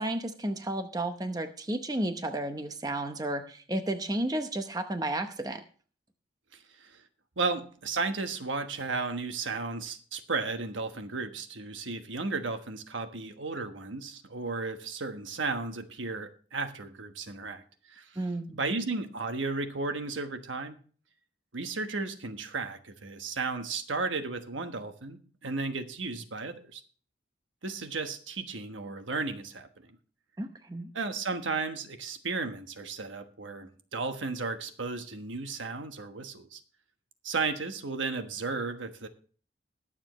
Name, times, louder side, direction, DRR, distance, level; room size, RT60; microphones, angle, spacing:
voice 1, 0.0-5.6 18.2-18.6 30.4-30.9, right 1 dB, 20° right, 7 dB, 0.8 m, -32 dB
voice 2, 7.4-17.6 17.9-18.2 18.5-20.8 21.5-26.8 27.6-29.9 30.9-36.6 37.2-39.1, right 3 dB, 85° right, 7 dB, 1.3 m, -34 dB
21.0 x 7.3 x 3.1 m, 0.42 s
head